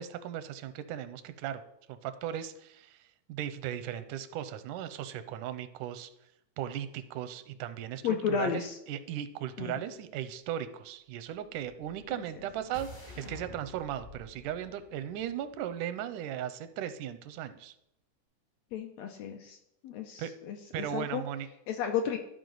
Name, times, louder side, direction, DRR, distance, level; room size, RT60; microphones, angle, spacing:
voice 1, 0.0-1.6 1.9-3.0 3.3-6.1 6.6-17.7 20.2-20.3 20.7-21.5, right 10 dB, 85° right, 11 dB, 2.1 m, -37 dB
voice 2, 8.0-8.8 9.6-9.7 18.7-19.6 19.8-21.2 21.7-22.2, left 7 dB, 80° left, 4 dB, 1.5 m, -33 dB
sound 1, 11.7-15.8, left 2 dB, 40° left, 0.7 m, -50 dB
12.5 x 4.9 x 3.9 m, 0.82 s
omnidirectional pair, 3.5 m